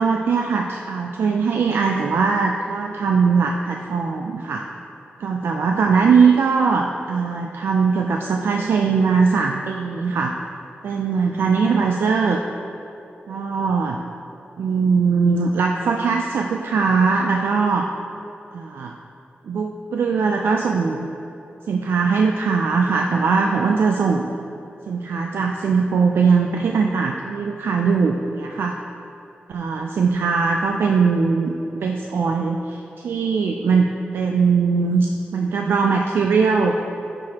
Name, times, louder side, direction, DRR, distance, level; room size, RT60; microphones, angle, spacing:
voice 1, 0.0-4.7 5.2-10.3 10.8-12.4 13.3-14.0 14.6-17.9 18.5-18.9 19.5-21.1 21.7-24.3 24.9-28.8 29.5-36.8, right 5 dB, 80° right, 2 dB, 0.4 m, -20 dB
9.5 x 6.1 x 2.9 m, 2.8 s
wide cardioid pair, 120°, 4 cm